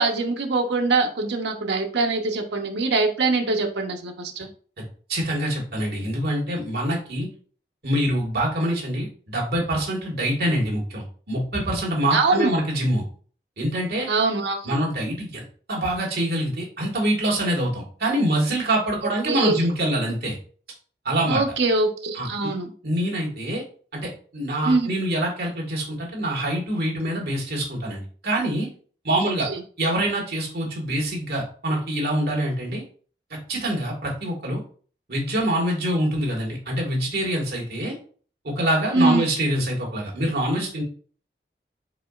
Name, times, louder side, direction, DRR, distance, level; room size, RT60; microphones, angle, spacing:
voice 1, 0.0-4.5 12.1-12.5 14.1-14.7 19.3-19.7 21.3-22.7 24.6-24.9 29.4-29.6 38.9-39.3, right 3 dB, 80° right, 3 dB, 0.8 m, -23 dB
voice 2, 5.1-7.3 7.8-13.0 13.6-14.1 14.6-20.4 21.1-21.4 22.1-22.3 22.8-23.6 23.9-28.7 29.0-29.5 29.8-32.8 33.3-34.6 35.1-38.0 38.4-40.8, right 1 dB, 60° right, -2 dB, 1.7 m, -25 dB
4.8 x 3.9 x 2.4 m, 0.43 s
head